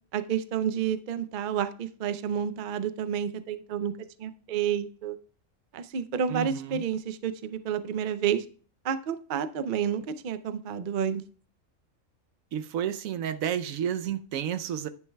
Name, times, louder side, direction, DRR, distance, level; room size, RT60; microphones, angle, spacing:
voice 1, 0.1-3.9 4.2-5.2 5.7-8.4 8.8-11.2, right 8 dB, 55° right, 0.6 m, -30 dB
voice 2, 6.3-6.8 12.5-14.9, right 9 dB, 90° right, 1.0 m, -31 dB
10.5 x 9.4 x 2.2 m
omnidirectional pair, 1.4 m